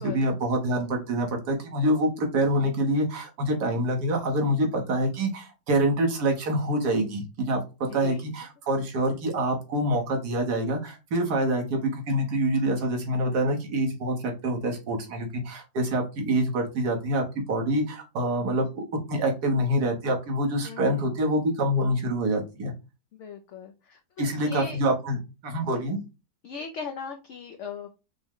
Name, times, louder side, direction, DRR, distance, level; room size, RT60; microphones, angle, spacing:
voice 1, 0.0-7.6 7.9-22.7 24.2-25.2 25.4-26.0, right 1 dB, 70° right, 2 dB, 1.6 m, -26 dB
voice 2, 7.9-8.3 20.6-21.1 23.2-24.8 26.4-28.0, left 6 dB, 70° left, 4 dB, 0.7 m, -39 dB
6.0 x 2.1 x 3.6 m, 0.29 s
omnidirectional pair, 1.8 m